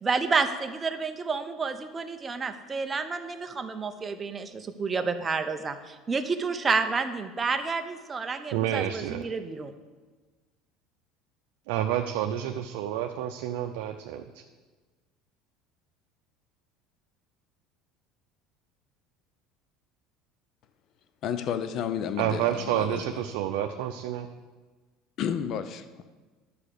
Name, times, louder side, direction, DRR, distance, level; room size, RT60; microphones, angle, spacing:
voice 1, 0.0-9.7, right 4 dB, 20° right, 7 dB, 0.8 m, -30 dB
voice 2, 8.5-9.2 11.7-14.4 22.2-24.3, right 11 dB, 80° right, 4 dB, 0.6 m, -29 dB
voice 3, 21.2-23.0 25.2-26.0, left 8 dB, 50° left, 10 dB, 0.7 m, -31 dB
11.0 x 5.0 x 6.7 m, 1.3 s
supercardioid pair, 130°, 0 cm